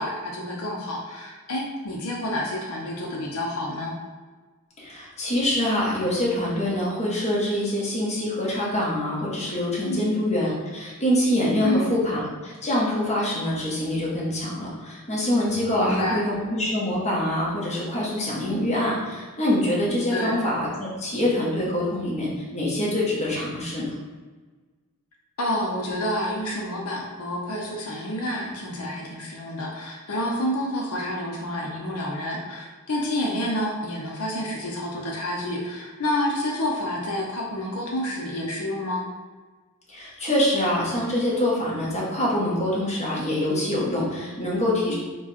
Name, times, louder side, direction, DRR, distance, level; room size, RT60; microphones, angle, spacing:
voice 1, 0.0-4.0 9.8-10.1 11.6-11.9 15.7-16.2 20.1-20.3 25.4-39.0 44.9-45.0, left 1 dB, 85° left, -1 dB, 0.7 m, -29 dB
voice 2, 4.8-20.7 21.0-23.9 39.9-44.9, left 1 dB, 30° left, -6 dB, 1.3 m, -25 dB
4.8 x 2.4 x 4.2 m, 1.3 s
head